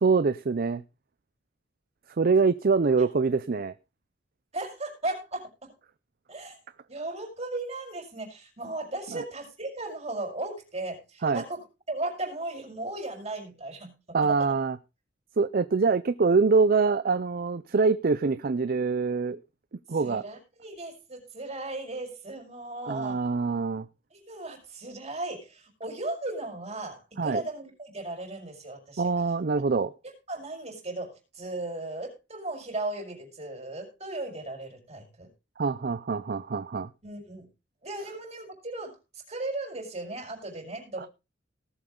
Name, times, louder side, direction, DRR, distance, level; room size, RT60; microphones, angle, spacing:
voice 1, 0.0-0.8 2.2-3.7 9.1-9.2 11.2-11.4 14.1-14.8 15.4-19.4 19.9-20.2 22.8-23.9 27.2-27.4 29.0-29.9 35.6-36.9 41.0-41.1, right 4 dB, 50° right, 15 dB, 0.5 m, -24 dB
voice 2, 4.5-5.5 6.3-6.6 6.9-11.6 11.9-14.5 20.0-23.3 24.1-29.0 30.3-35.3 37.0-37.5 37.8-38.9 39.3-41.1, right 2 dB, 35° right, 1 dB, 5.6 m, -36 dB
18.5 x 7.9 x 3.8 m, 0.28 s
head